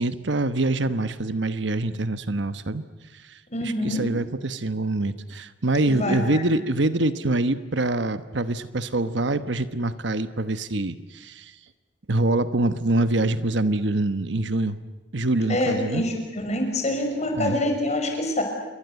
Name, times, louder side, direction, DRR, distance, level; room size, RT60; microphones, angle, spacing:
voice 1, 0.0-2.8 3.3-11.5 12.1-14.8 15.1-16.0 17.3-17.6, right 2 dB, 70° right, 12 dB, 1.2 m, -25 dB
voice 2, 3.5-4.0 5.9-6.4 15.5-18.4, left 1 dB, 40° left, 4 dB, 5.8 m, -26 dB
28.5 x 23.0 x 8.2 m, 1.1 s
head